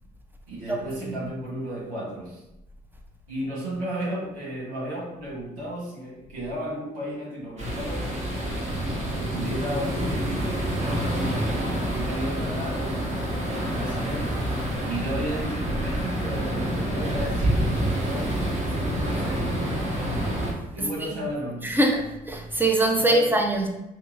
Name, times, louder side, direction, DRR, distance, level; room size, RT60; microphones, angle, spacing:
voice 1, 0.5-2.4 3.3-8.1 9.0-10.6 11.9-19.8 20.7-21.8 22.9-23.4, equal, 75° right, -5 dB, 1.1 m, -34 dB
sound 1, 7.6-20.5, right 1 dB, 35° right, 1.3 m, -27 dB
voice 2, 20.8-21.3 21.6-23.7, right 1 dB, 10° right, 2 dB, 0.7 m, -23 dB
2.8 x 2.7 x 3.7 m, 0.90 s
hypercardioid pair, 50°, 20 cm